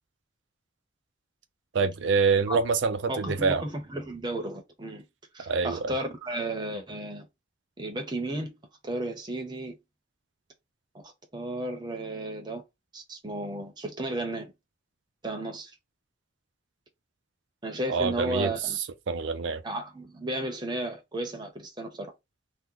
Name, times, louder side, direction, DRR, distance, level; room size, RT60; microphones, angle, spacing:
voice 1, 1.7-3.6 5.5-5.9 17.9-18.5 19.1-19.6, right 5 dB, 70° right, 0.5 m, -25 dB
voice 2, 3.1-5.1 5.3-7.3 7.8-8.5 8.8-9.8 10.9-12.6 12.9-14.5 15.2-15.7 17.6-18.8 19.6-22.1, right 1 dB, 25° right, 0.7 m, -34 dB
2.9 x 2.1 x 3.7 m
head